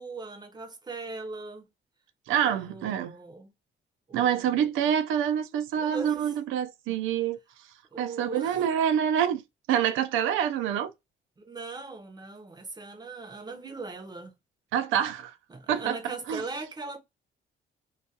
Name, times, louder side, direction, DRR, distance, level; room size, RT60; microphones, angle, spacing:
voice 1, 0.0-1.7 2.4-3.5 4.1-4.7 5.8-6.3 7.9-8.7 11.4-14.3 15.5-17.0, right 3 dB, 20° right, 0.6 m, -40 dB
voice 2, 2.3-3.1 4.1-7.4 8.0-9.4 9.7-10.9 14.7-15.3 15.7-16.4, right 9 dB, 85° right, 0.4 m, -26 dB
2.3 x 2.2 x 2.7 m
cardioid pair, 90°, 20 cm